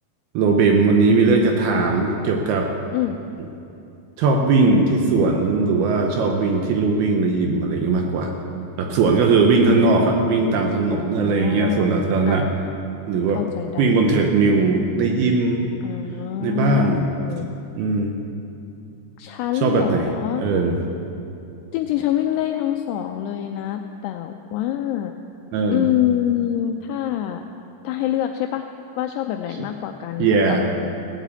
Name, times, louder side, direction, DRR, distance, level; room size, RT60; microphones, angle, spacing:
voice 1, 0.3-2.7 4.2-8.3 8.8-12.5 13.1-13.4 13.8-15.7 16.4-17.1 17.3-17.4 17.8-18.2 19.6-20.1 20.4-20.8 25.5-25.9 30.2-30.6, right 3 dB, 75° right, 2 dB, 2.4 m, -19 dB
voice 2, 9.6-10.3 11.1-11.9 12.3-12.6 13.4-14.0 15.8-17.5 19.2-20.4 21.7-25.1 25.7-27.4 27.8-28.7 29.0-31.0, left 12 dB, 85° left, 5 dB, 2.4 m, -25 dB
16.0 x 8.2 x 8.4 m, 2.8 s
omnidirectional pair, 5.2 m